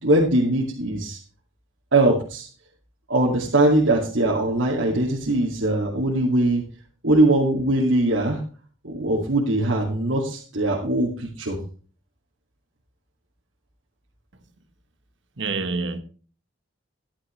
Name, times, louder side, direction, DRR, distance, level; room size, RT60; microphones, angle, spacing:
voice 1, 0.0-1.2 1.9-2.5 3.1-6.7 7.0-8.4 8.8-11.6, right 1 dB, 85° right, 2.3 m, -21 dB
voice 2, 15.4-16.0, right 4 dB, 70° right, 1.4 m, -26 dB
13.5 x 11.0 x 3.2 m
head